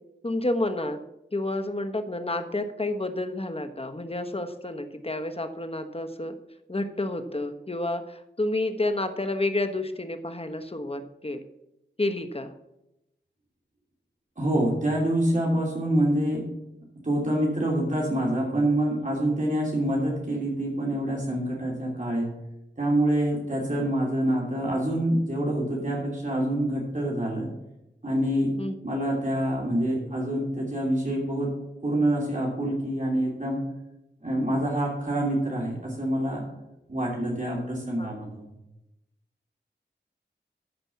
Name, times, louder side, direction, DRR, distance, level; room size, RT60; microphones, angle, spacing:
voice 1, 0.2-1.0 1.3-6.3 6.7-11.4 12.0-12.5 28.6-28.7 38.0-38.1, left 2 dB, 30° left, 8 dB, 1.1 m, -30 dB
voice 2, 14.4-16.4 17.0-22.3 22.8-27.5 28.0-28.5 28.8-31.5 31.8-33.6 34.2-36.4 36.9-38.5, right 1 dB, 40° right, -4 dB, 3.1 m, -26 dB
13.0 x 5.3 x 7.0 m, 0.89 s
wide cardioid pair, 60°, 19 cm